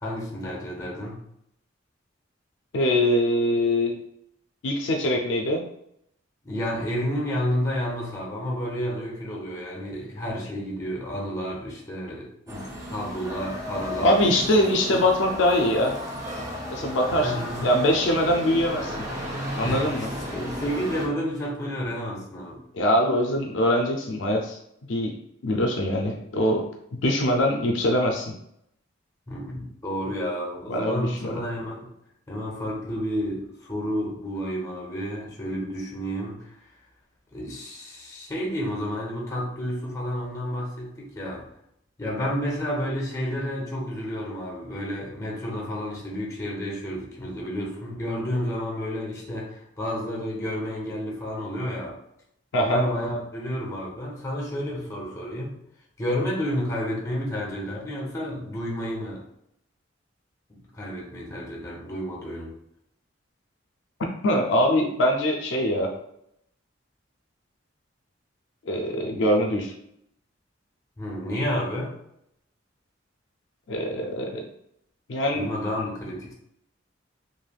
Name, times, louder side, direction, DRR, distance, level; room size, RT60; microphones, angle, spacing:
voice 1, 0.0-1.2 6.4-15.0 17.1-17.8 19.6-22.6 29.3-31.9 32.3-36.5 37.3-41.4 42.0-51.9 52.5-55.5 56.0-59.2 60.5-62.5 71.0-71.9 75.3-76.3, equal, 15° left, -2 dB, 0.8 m, -31 dB
voice 2, 2.7-4.0 4.6-5.6 14.0-16.0 16.7-19.0 19.6-20.1 22.7-24.6 24.9-28.3 30.7-31.4 52.5-52.8 64.2-65.9 68.7-69.7 73.7-74.5 75.1-75.5, left 1 dB, 70° left, 1 dB, 0.4 m, -23 dB
sound 1, 12.5-21.1, equal, 15° right, 0.7 m, -34 dB
3.2 x 2.6 x 2.3 m, 0.75 s
head